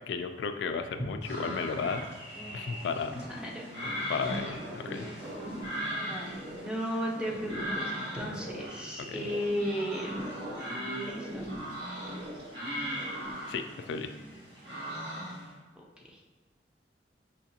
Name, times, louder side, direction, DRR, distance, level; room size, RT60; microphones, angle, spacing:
voice 1, 0.1-2.0 2.5-3.2 4.1-5.1 9.1-9.2 13.5-14.1, left 5 dB, 75° left, 8 dB, 0.3 m, -34 dB
sound 1, 1.2-15.5, equal, 75° right, 1.4 m, -39 dB
voice 2, 3.4-3.7 6.1-10.1 10.7-11.5 15.8-16.2, equal, 5° right, -2 dB, 0.6 m, -35 dB
sound 2, 4.2-4.9 5.2-6.8 7.2-8.8 9.1-10.8 11.0-12.6 12.9-13.5, right 1 dB, 55° right, 0.6 m, -42 dB
5.6 x 2.4 x 2.8 m, 1.3 s
head